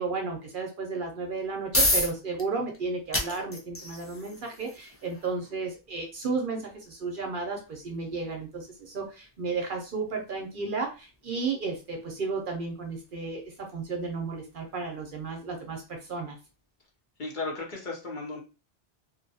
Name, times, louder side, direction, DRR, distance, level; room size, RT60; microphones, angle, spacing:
voice 1, 0.0-16.4, right 4 dB, 60° right, 2 dB, 0.7 m, -33 dB
sound 1, 1.2-16.1, left 1 dB, 25° left, 0.3 m, -36 dB
voice 2, 17.2-18.4, left 3 dB, 50° left, -1 dB, 0.9 m, -35 dB
2.5 x 2.2 x 2.7 m, 0.31 s
omnidirectional pair, 1.1 m